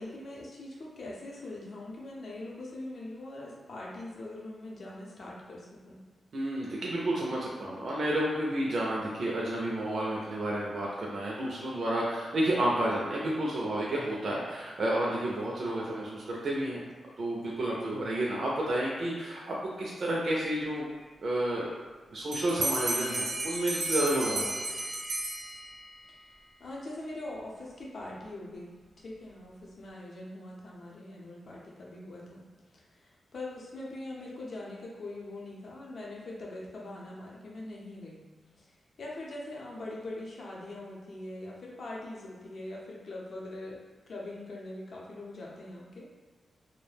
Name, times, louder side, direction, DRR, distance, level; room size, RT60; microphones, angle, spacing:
voice 1, 0.0-6.0 26.1-26.2 26.6-32.4 32.7-38.2 38.6-38.7 39.0-43.8 44.1-46.1, left 2 dB, 55° left, -4 dB, 0.6 m, -42 dB
voice 2, 6.3-16.8 17.2-20.8 21.2-21.7 22.1-24.6, right 1 dB, 50° right, -4 dB, 0.4 m, -31 dB
Bell, 22.3-25.9, right 2 dB, 85° right, 0.7 m, -33 dB
2.3 x 2.1 x 3.1 m, 1.4 s
wide cardioid pair, 140°, 0 cm